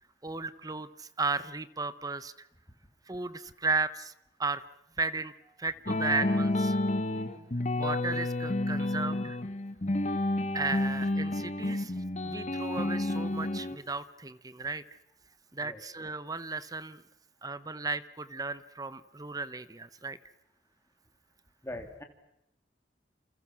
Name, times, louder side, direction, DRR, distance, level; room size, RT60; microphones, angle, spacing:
voice 1, 0.2-2.5 3.1-4.1 4.4-4.6 5.0-5.3 5.6-6.8 7.8-9.4 10.5-11.9 12.2-15.0 15.5-17.0 17.4-20.2, right 3 dB, 20° right, 15 dB, 0.9 m, -34 dB
sound 1, 5.9-13.8, left 1 dB, 40° left, 1.5 m, -30 dB
voice 2, 21.6-22.0, left 1 dB, 15° left, 5 dB, 3.2 m, -40 dB
29.0 x 28.5 x 6.2 m, 0.84 s
head